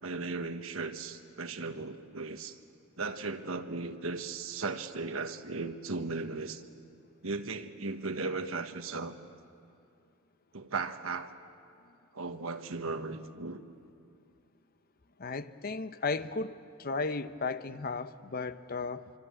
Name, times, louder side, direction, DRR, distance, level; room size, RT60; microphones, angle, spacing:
voice 1, 0.0-2.6 3.0-6.6 7.2-9.2 10.5-11.3 12.1-13.6, right 3 dB, 80° right, 1.3 m, -36 dB
voice 2, 15.2-19.1, left 4 dB, 45° left, 0.8 m, -35 dB
26.5 x 25.0 x 8.9 m
head